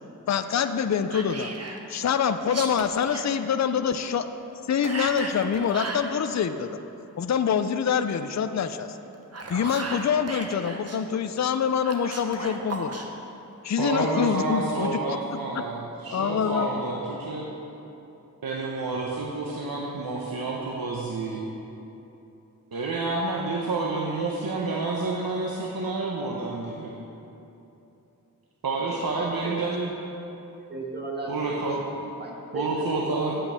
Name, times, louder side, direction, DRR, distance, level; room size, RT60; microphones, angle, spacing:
voice 1, 0.3-1.5 1.9-4.3 4.7-6.8 7.2-9.0 9.5-13.0 13.6-15.2 16.1-16.7, left 7 dB, 50° left, 9 dB, 0.5 m, -25 dB
Whispering, 1.1-1.8 2.4-3.3 4.8-6.1 9.1-11.0 11.8-13.1, right 2 dB, 45° right, 1.0 m, -35 dB
voice 2, 13.8-17.5 18.4-21.4 22.7-26.9 28.6-29.9 31.3-31.8 32.5-33.4, right 3 dB, 85° right, -3 dB, 0.9 m, -29 dB
voice 3, 28.7-29.5 30.7-31.5 31.9-33.2, right 2 dB, 30° right, -2 dB, 1.7 m, -36 dB
8.6 x 5.2 x 7.3 m, 2.9 s
wide cardioid pair, 50°, 35 cm